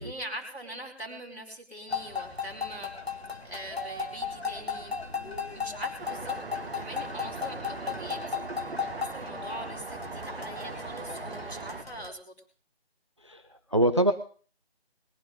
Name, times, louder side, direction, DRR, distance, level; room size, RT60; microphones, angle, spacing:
voice 1, 0.0-4.9 5.5-6.4 6.7-8.2 8.6-12.3, right 1 dB, ahead, -16 dB, 0.9 m, -42 dB
sound 1, 1.9-12.1, left 5 dB, 70° left, 2.2 m, -36 dB
Traffic noise roadway noise, 6.0-11.8, right 4 dB, 60° right, 1.0 m, -40 dB
voice 2, 13.2-14.1, right 1 dB, 30° right, 10 dB, 0.5 m, -25 dB
21.0 x 11.5 x 3.9 m, 0.42 s
figure-of-eight pair, 165°, 32 cm